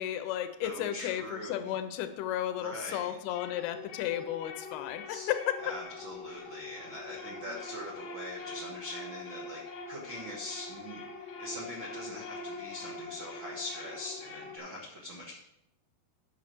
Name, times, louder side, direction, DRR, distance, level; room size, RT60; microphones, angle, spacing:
voice 1, 0.0-5.7, left 11 dB, 85° left, 10 dB, 2.7 m, -33 dB
voice 2, 0.6-1.7 2.6-3.3 5.1-5.3 5.6-15.4, left 1 dB, 70° right, -3 dB, 1.1 m, -42 dB
sound 1, 2.6-14.6, left 3 dB, 60° left, 1.7 m, -44 dB
9.7 x 6.5 x 4.4 m, 0.80 s
omnidirectional pair, 4.4 m